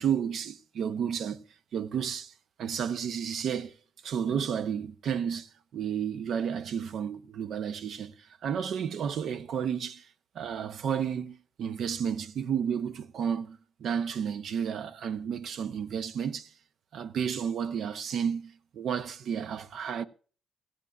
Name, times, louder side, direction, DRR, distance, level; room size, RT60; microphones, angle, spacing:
voice 1, 0.0-1.4 1.7-2.3 2.6-3.7 4.0-10.1 10.3-16.5 16.9-20.0, right 8 dB, 65° right, 0.8 m, -32 dB
16.5 x 15.0 x 2.4 m
cardioid pair, 90°, 0 cm